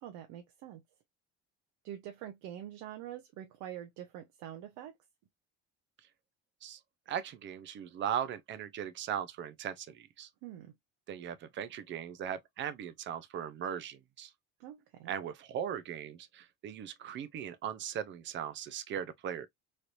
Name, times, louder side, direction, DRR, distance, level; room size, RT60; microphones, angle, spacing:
voice 1, 0.0-0.8 1.8-4.9 10.4-10.7 14.6-15.1, right 11 dB, 80° right, 0.7 m, -45 dB
voice 2, 7.1-10.3 11.1-14.3 15.1-19.5, right 9 dB, 40° right, 0.5 m, -38 dB
3.2 x 2.9 x 2.5 m
cardioid pair, 145°, 29 cm